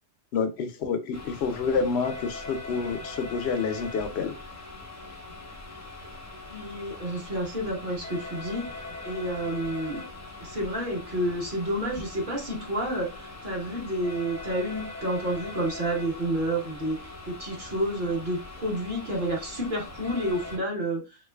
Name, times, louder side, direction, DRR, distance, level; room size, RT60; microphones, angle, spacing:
voice 1, 0.3-4.3, left 5 dB, 65° left, 8 dB, 0.7 m, -28 dB
sound 1, 1.1-20.6, left 2 dB, 15° left, 0.6 m, -41 dB
voice 2, 6.5-8.6 9.0-10.0 10.4-21.2, right 1 dB, 45° right, -1 dB, 1.3 m, -30 dB
3.5 x 3.1 x 2.2 m, 0.27 s
omnidirectional pair, 1.3 m